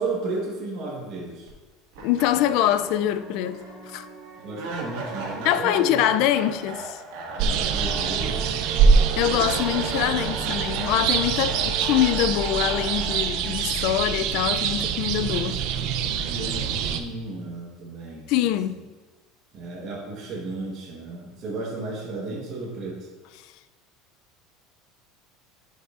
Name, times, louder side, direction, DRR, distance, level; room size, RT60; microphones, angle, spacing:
voice 1, 0.0-1.5 4.4-6.0 7.3-8.5 16.2-18.3 19.5-23.1, right 3 dB, 35° right, 1.3 m, -33 dB
sound 1, 1.5-1.6 1.9-15.0, right 3 dB, 85° right, 1.7 m, -36 dB
voice 2, 2.0-4.1 5.4-7.0 9.2-15.6 18.3-18.9 23.4-23.5, left 12 dB, 55° left, 0.3 m, -24 dB
sound 2, 7.4-17.0, right 6 dB, 60° right, 0.5 m, -24 dB
10.5 x 5.3 x 2.5 m
cardioid pair, 160°, 0 cm